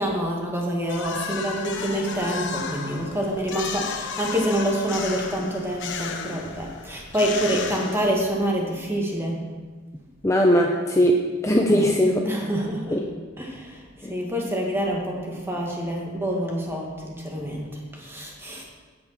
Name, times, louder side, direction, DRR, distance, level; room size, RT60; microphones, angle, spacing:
voice 1, 0.0-9.4 11.7-11.9 12.2-13.0 13.4-13.8 14.1-18.6, equal, 10° right, -1 dB, 2.1 m, -27 dB
sound 1, 0.9-8.5, left 5 dB, 60° left, 1.1 m, -34 dB
voice 2, 10.2-11.1 11.4-12.2 12.9-13.0 14.0-14.1, equal, 15° left, 1 dB, 0.7 m, -19 dB
17.0 x 5.9 x 6.0 m, 1.4 s
head